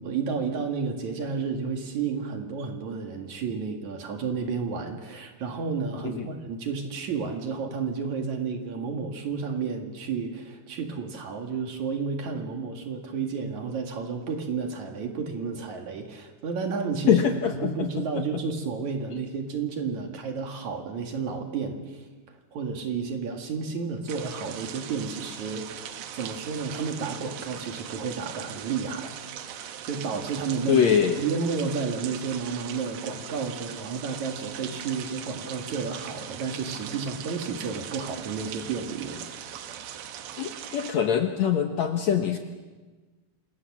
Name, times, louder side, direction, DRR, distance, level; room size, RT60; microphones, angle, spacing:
voice 1, 0.0-17.2 17.5-29.5 29.8-30.8 31.2-39.3, right 5 dB, 55° right, 4 dB, 3.1 m, -31 dB
voice 2, 17.1-17.9 18.1-18.2 30.7-31.2 40.4-42.4, left 8 dB, 60° left, 5 dB, 2.0 m, -23 dB
sound 1, 24.1-40.9, right 9 dB, 85° right, 3.2 m, -40 dB
27.5 x 20.0 x 7.4 m, 1.3 s
omnidirectional pair, 4.3 m